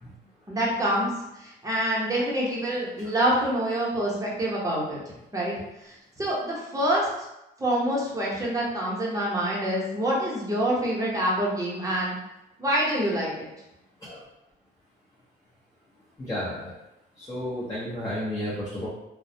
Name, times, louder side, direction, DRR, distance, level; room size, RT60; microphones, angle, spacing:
voice 1, 0.5-1.1 1.4-5.5 5.8-7.1 7.6-12.2 12.6-13.5, right 1 dB, 15° right, -5 dB, 0.8 m, -26 dB
voice 2, 16.2-16.7 17.2-18.9, left 1 dB, 15° left, -8 dB, 0.7 m, -32 dB
2.2 x 2.1 x 2.7 m, 0.90 s
cardioid pair, 90°, 20 cm